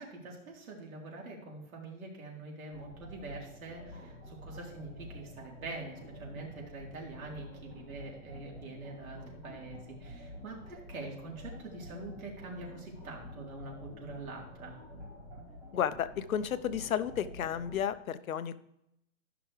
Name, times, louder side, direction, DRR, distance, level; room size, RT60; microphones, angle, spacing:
voice 1, 0.0-14.8, right 2 dB, 90° right, -2 dB, 3.9 m, -45 dB
Monsters In Mars Dancing, 2.7-17.8, left 1 dB, 15° right, 2.0 m, -49 dB
voice 2, 15.7-18.6, left 9 dB, 85° left, 13 dB, 0.9 m, -32 dB
14.5 x 6.0 x 3.3 m, 0.80 s
hypercardioid pair, 175°, 41 cm